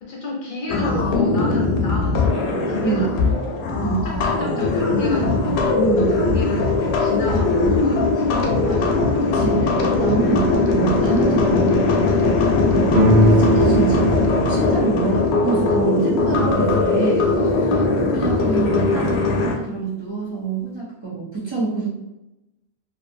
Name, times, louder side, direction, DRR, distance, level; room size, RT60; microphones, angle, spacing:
voice 1, 0.0-9.1 10.3-10.5 15.0-15.2 17.6-18.0, left 2 dB, 55° left, -2 dB, 0.7 m, -32 dB
sound 1, 0.7-19.5, left 3 dB, 85° left, 0.8 m, -20 dB
voice 2, 5.8-6.1 9.2-12.4 12.7-17.2 18.0-21.9, right 3 dB, 35° right, -8 dB, 0.5 m, -26 dB
sound 2, 12.9-16.5, right 1 dB, 75° right, 0.8 m, -21 dB
2.5 x 2.5 x 2.5 m, 0.93 s
omnidirectional pair, 1.1 m